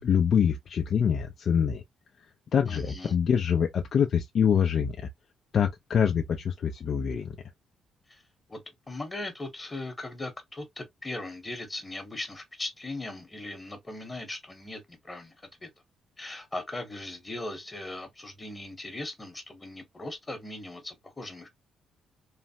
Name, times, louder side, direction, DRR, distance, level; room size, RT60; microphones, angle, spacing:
voice 1, 0.0-1.8 2.5-5.1 5.5-7.4, left 7 dB, 55° left, 0.4 m, -25 dB
voice 2, 2.6-3.1 8.1-8.2 8.5-8.6 8.9-15.3 15.6-15.7 16.2-21.5, left 2 dB, 20° left, 1.0 m, -39 dB
3.1 x 2.0 x 2.7 m
cardioid pair, 90°, 0 cm